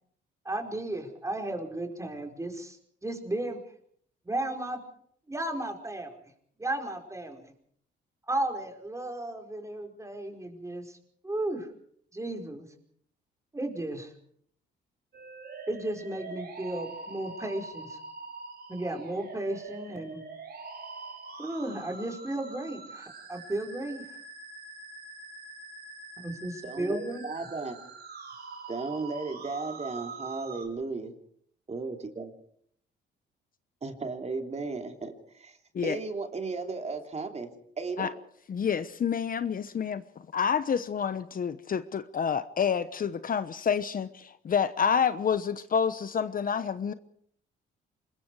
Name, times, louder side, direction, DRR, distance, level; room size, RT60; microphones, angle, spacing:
voice 1, 0.4-3.6 4.2-4.8 5.3-6.1 6.6-7.5 8.3-11.0 11.2-11.7 12.1-12.7 13.5-14.1 15.7-18.0 18.7-20.2 21.4-24.0 26.2-27.3, right 1 dB, 15° right, 4 dB, 4.9 m, -34 dB
sound 1, 15.1-30.7, right 4 dB, 55° right, 4.8 m, -44 dB
voice 2, 26.6-27.8 28.7-31.1 31.7-32.3 33.8-35.6 35.8-38.1, right 3 dB, 35° right, 5 dB, 3.2 m, -35 dB
voice 3, 38.5-40.0 40.3-46.9, left 7 dB, 45° left, 13 dB, 1.0 m, -28 dB
26.0 x 22.0 x 4.8 m, 0.64 s
cardioid pair, 90°, 20 cm